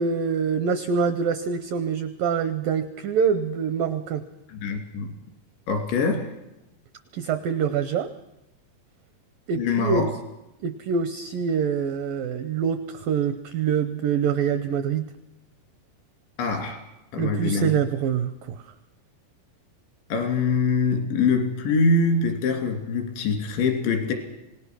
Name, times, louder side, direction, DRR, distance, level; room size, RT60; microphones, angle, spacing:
voice 1, 0.0-4.2 7.1-8.1 9.5-10.1 10.6-15.1 17.2-18.6, right 6 dB, 85° right, 11 dB, 2.0 m, -25 dB
voice 2, 4.5-5.2 5.7-6.3 9.6-10.1 16.4-16.8 17.1-17.7 20.1-24.1, left 4 dB, 85° left, 4 dB, 5.3 m, -24 dB
26.0 x 19.0 x 6.3 m, 0.93 s
omnidirectional pair, 5.2 m